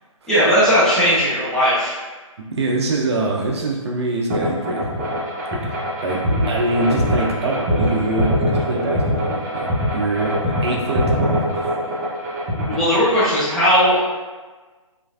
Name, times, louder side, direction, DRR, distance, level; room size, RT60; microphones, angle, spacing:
voice 1, 0.3-1.9 12.5-14.0, equal, 5° left, -12 dB, 0.6 m, -17 dB
voice 2, 2.5-5.1 6.0-6.2 6.5-11.7 12.7-12.8, right 2 dB, 50° right, -1 dB, 0.5 m, -24 dB
sound 1, 4.3-13.2, equal, 30° right, 0.8 m, -22 dB
3.0 x 2.5 x 2.4 m, 1.3 s
figure-of-eight pair, 145°, 17 cm